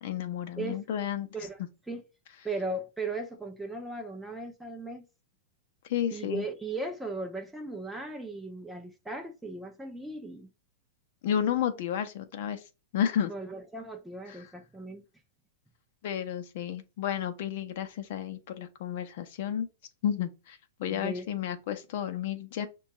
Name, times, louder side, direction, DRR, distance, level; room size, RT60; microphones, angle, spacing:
voice 1, 0.0-1.3 5.9-6.4 11.2-12.6 12.9-13.3 14.3-14.5 16.0-19.7 20.0-22.7, left 9 dB, 50° left, 0.6 m, -32 dB
voice 2, 2.4-5.0 6.1-10.5 13.3-15.0 20.9-21.3, right 2 dB, 5° right, 0.5 m, -37 dB
6.2 x 2.3 x 2.9 m
supercardioid pair, 165°, 0 cm